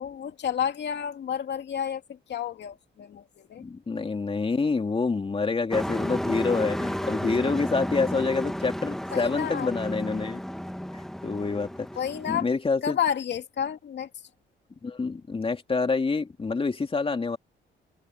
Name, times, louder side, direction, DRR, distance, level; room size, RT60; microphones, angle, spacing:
voice 1, 0.0-2.0 2.3-3.6 9.1-9.7 12.0-12.5 12.8-14.1, left 9 dB, 60° left, 2.7 m, -30 dB
voice 2, 3.6-10.4 11.2-11.9 12.3-13.0 14.8-17.4, left 4 dB, 30° left, 3.0 m, -27 dB
Truck, 5.7-12.4, equal, ahead, 1.0 m, -32 dB
open air
cardioid pair, 90°, 20 cm